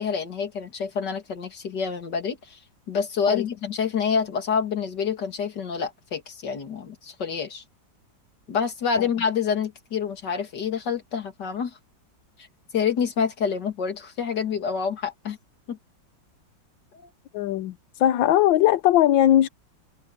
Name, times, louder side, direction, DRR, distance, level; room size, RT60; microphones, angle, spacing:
voice 1, 0.0-2.6 2.9-7.6 8.5-11.7 12.4-12.5 12.7-15.4 15.7-15.8, left 6 dB, 60° left, 2.9 m, -27 dB
voice 2, 17.3-19.5, left 12 dB, 85° left, 1.5 m, -20 dB
omnidirectional pair, 2.1 m